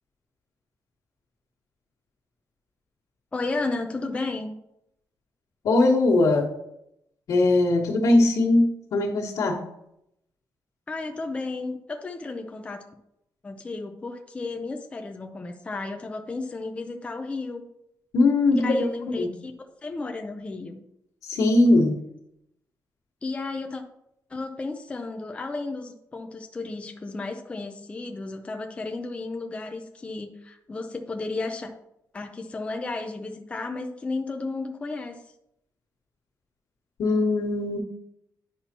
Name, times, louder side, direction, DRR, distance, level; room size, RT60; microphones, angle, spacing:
voice 1, 3.3-4.5 10.9-12.9 13.4-17.7 18.6-19.5 19.8-20.8 23.2-23.8 24.3-31.7 32.1-35.2, left 3 dB, 15° left, 4 dB, 0.5 m, -33 dB
voice 2, 5.6-6.5 7.3-9.6 18.1-18.7 19.2-19.3 21.2-21.9 37.0-37.8, left 2 dB, 65° left, -8 dB, 1.5 m, -20 dB
9.8 x 5.6 x 2.9 m, 0.79 s
wide cardioid pair, 180°, 7 cm